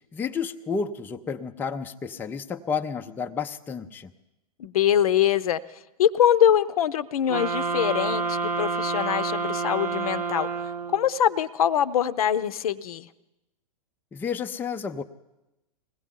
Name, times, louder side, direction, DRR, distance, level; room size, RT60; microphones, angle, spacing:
voice 1, 0.1-4.1 14.1-15.0, left 6 dB, 10° left, 6 dB, 0.5 m, -31 dB
voice 2, 4.6-5.6 6.0-10.5 10.9-13.1, left 10 dB, 65° left, 14 dB, 0.6 m, -23 dB
sound 1, 7.3-11.2, right 4 dB, 85° right, 0.9 m, -28 dB
21.0 x 16.0 x 3.7 m, 0.95 s
hypercardioid pair, 115°, 20 cm